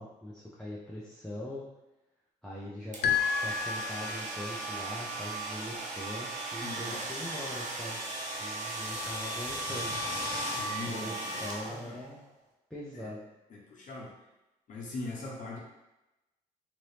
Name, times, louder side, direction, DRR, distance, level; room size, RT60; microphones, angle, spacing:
voice 1, 0.0-1.6 2.4-8.0 8.4-10.0 10.6-12.2 12.7-13.2, left 1 dB, 5° left, -7 dB, 0.6 m, -42 dB
sound 1, 2.9-12.1, right 1 dB, 50° right, 0.7 m, -36 dB
sound 2, 3.0-4.6, left 7 dB, 85° left, 0.4 m, -31 dB
voice 2, 6.6-7.2 10.5-12.0 12.9-13.1 13.5-14.1 14.7-15.6, left 2 dB, 55° left, -3 dB, 0.8 m, -41 dB
3.0 x 2.6 x 3.3 m, 0.98 s
cardioid pair, 90°, 15 cm